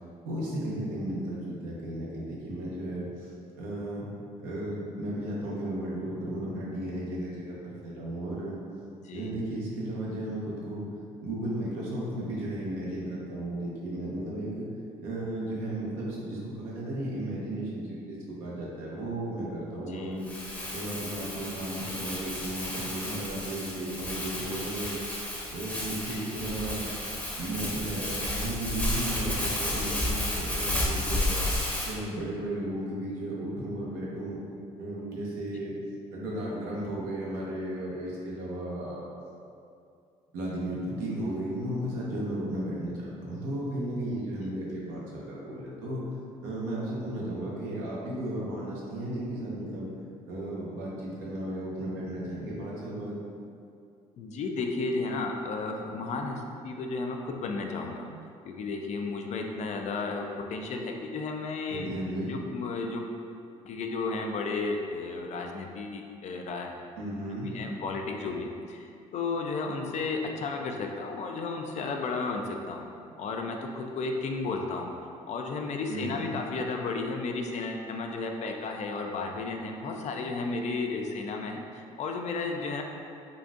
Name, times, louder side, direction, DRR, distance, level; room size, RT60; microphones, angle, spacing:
voice 1, 0.2-3.3 3.6-4.0 4.4-8.6 9.1-10.9 11.2-14.7 15.0-20.3 20.7-24.9 25.5-26.9 27.4-31.4 31.8-34.4 34.8-35.7 36.1-39.1 40.3-46.0 46.4-49.9 50.3-53.1 61.7-62.3 67.0-67.5 75.9-76.3, right 1 dB, 80° right, -5 dB, 0.8 m, -34 dB
voice 2, 19.9-20.2 26.1-26.3 44.4-44.5 54.2-58.1 58.4-61.9 62.3-63.2 63.6-66.7 67.3-72.9 73.2-74.9 75.3-82.8, left 3 dB, 50° left, 3 dB, 0.4 m, -33 dB
Crumpling crinkling, 20.2-31.9, left 1 dB, 10° left, 0.8 m, -32 dB
3.9 x 2.4 x 2.4 m, 2.4 s
hypercardioid pair, 60°, 15 cm